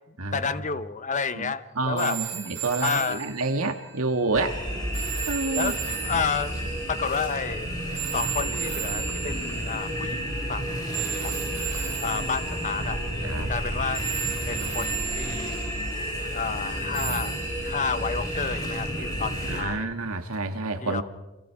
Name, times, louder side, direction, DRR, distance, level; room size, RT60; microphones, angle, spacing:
voice 1, 0.1-2.2 2.8-3.3 5.5-6.6 6.9-7.7 8.1-10.8 11.1-13.0 13.5-14.0 14.5-15.6 16.3-17.4 17.6-19.9 20.8-21.0, left 5 dB, 35° left, 13 dB, 0.9 m, -30 dB
voice 2, 1.4-4.6 5.3-5.8 13.2-13.5 19.5-21.0, right 3 dB, 70° right, 6 dB, 1.9 m, -28 dB
sound 1, 2.0-10.2 10.9-13.6 13.9-16.1 16.9-19.2 20.3-20.5, right 11 dB, 55° right, 6.9 m, -36 dB
sound 2, 4.3-19.6, equal, 20° left, 5.2 m, -31 dB
28.5 x 26.0 x 4.8 m, 1.1 s
head